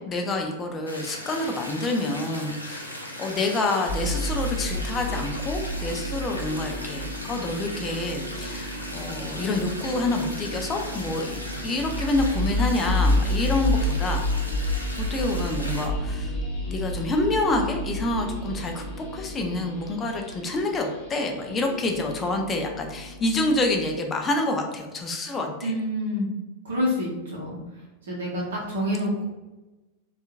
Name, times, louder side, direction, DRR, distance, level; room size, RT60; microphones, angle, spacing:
voice 1, 0.0-14.3 15.0-16.3 16.7-25.7, left 2 dB, 20° left, 3 dB, 0.4 m, -27 dB
sound 1, 0.9-15.8, left 1 dB, 85° left, 0.4 m, -38 dB
sound 2, 3.9-22.3, left 1 dB, 50° left, 1.1 m, -30 dB
sound 3, 4.1-19.6 21.9-24.0, equal, 15° right, 1.0 m, -40 dB
voice 2, 25.6-26.3 26.6-27.6 28.1-29.2, left 1 dB, 65° right, -6 dB, 0.7 m, -27 dB
2.7 x 2.4 x 2.4 m, 1.1 s
figure-of-eight pair, 90°, 0 cm